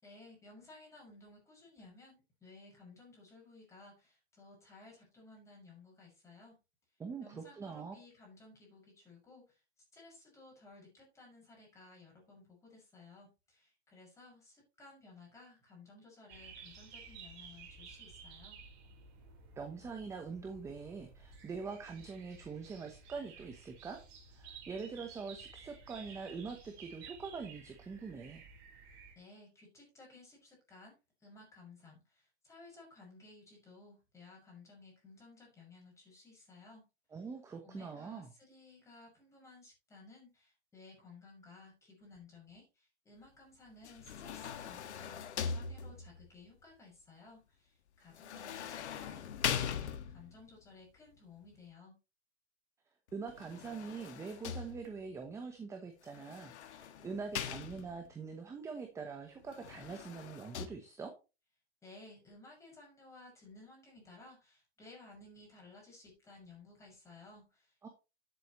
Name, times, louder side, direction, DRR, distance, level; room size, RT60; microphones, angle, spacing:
voice 1, 0.0-6.5 7.2-9.6 9.9-18.6 29.1-31.0 31.2-36.8 37.6-52.0 61.8-67.9, left 3 dB, 10° left, -2 dB, 6.3 m, -57 dB
voice 2, 7.0-7.9 19.6-24.0 24.3-28.4 37.1-38.3 53.1-61.1 67.8-67.9, right 5 dB, 10° right, 5 dB, 0.9 m, -44 dB
sound 1, 16.3-29.1, right 5 dB, 35° right, 4.3 m, -54 dB
sound 2, 43.8-46.3 48.1-50.4 53.3-55.1 56.1-58.1 59.5-60.7, left 8 dB, 85° left, 1.6 m, -41 dB
12.5 x 8.1 x 3.1 m, 0.30 s
hypercardioid pair, 155°, 33 cm